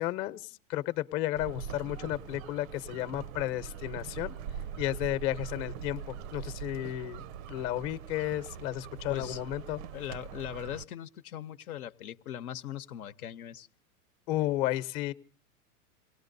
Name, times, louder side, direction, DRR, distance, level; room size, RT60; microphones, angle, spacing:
voice 1, 0.0-4.3 4.8-7.2 7.5-9.8 14.3-15.1, left 15 dB, 40° left, 12 dB, 0.9 m, -33 dB
sound 1, 1.3-10.8, right 8 dB, 65° right, 0.7 m, -42 dB
voice 2, 9.1-9.4 9.9-13.7, left 11 dB, 75° left, 8 dB, 0.9 m, -40 dB
27.5 x 18.5 x 2.7 m, 0.39 s
hypercardioid pair, 120°, 44 cm